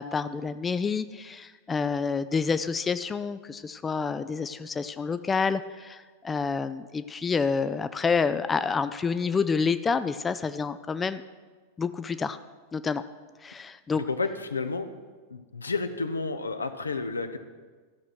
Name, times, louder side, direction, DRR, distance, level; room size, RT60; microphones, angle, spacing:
voice 1, 0.0-11.2 11.8-12.4 12.7-13.0 13.4-14.0, left 5 dB, 15° left, 12 dB, 0.4 m, -28 dB
voice 2, 13.9-14.9 15.3-17.4, left 4 dB, 75° left, 9 dB, 0.7 m, -31 dB
14.0 x 6.2 x 5.9 m, 1.4 s
figure-of-eight pair, 90°, 0 cm